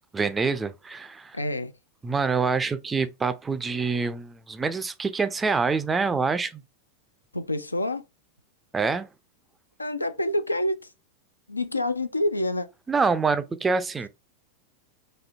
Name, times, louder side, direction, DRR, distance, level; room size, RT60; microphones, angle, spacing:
voice 1, 0.1-1.4 2.0-6.6 8.7-9.1 12.9-14.1, right 4 dB, 15° right, 0.4 m, -26 dB
voice 2, 1.3-1.7 7.3-8.0 9.8-10.9 11.5-12.7, left 1 dB, 85° left, 0.4 m, -27 dB
4.1 x 2.7 x 2.5 m
figure-of-eight pair, 90°, 0 cm